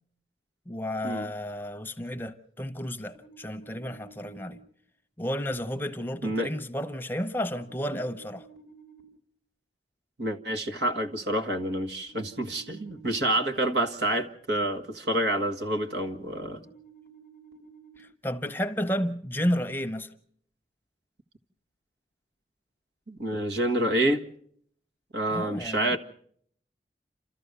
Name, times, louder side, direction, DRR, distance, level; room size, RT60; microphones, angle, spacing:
voice 1, 0.7-4.6 5.2-8.5 18.0-20.1 25.3-26.0, equal, 10° left, 0.8 m, -32 dB
sound 1, 3.1-4.5 7.6-9.0 12.1-13.5 16.6-18.0, right 6 dB, 60° right, 7.0 m, -53 dB
voice 2, 10.2-16.6 23.1-24.2 25.1-26.0, right 1 dB, 80° right, 1.7 m, -28 dB
28.5 x 14.0 x 6.7 m
head